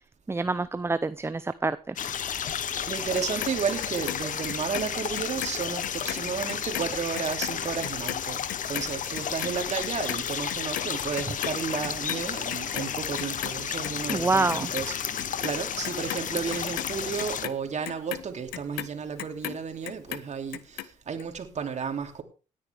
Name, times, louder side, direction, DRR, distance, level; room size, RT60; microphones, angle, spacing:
voice 1, 0.3-2.0 14.1-14.7, right 3 dB, 15° right, 0.6 m, -26 dB
sound 1, 2.0-17.4, left 8 dB, 55° left, 1.1 m, -32 dB
voice 2, 2.8-22.2, right 6 dB, 50° right, 2.8 m, -33 dB
Clock, 3.1-5.5 5.8-12.2 12.5-13.6 13.8-14.8 15.2-19.6 19.9-20.9 21.2-21.3, left 15 dB, 80° left, 0.9 m, -36 dB
18.0 x 9.7 x 3.5 m
supercardioid pair, 60°, 16 cm